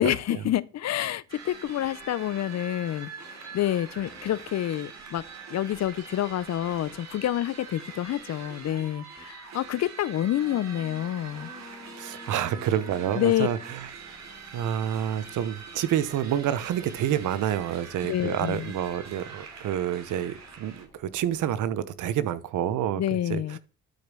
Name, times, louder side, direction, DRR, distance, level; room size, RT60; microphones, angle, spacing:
voice 1, 0.0-3.1 3.5-5.2 5.5-11.5 13.2-13.5 18.1-18.7 23.0-23.6, left 12 dB, 60° left, 0.7 m, -28 dB
sound 1, 1.3-20.9, right 5 dB, 60° right, 3.3 m, -44 dB
sound 2, 1.8-4.4 5.2-8.6 9.2-9.3 10.4-21.6, left 4 dB, 25° left, 2.2 m, -53 dB
voice 2, 12.0-13.9 14.5-23.0 23.3-23.6, right 10 dB, 80° right, 1.0 m, -28 dB
12.0 x 5.3 x 6.2 m
cardioid pair, 90°, 30 cm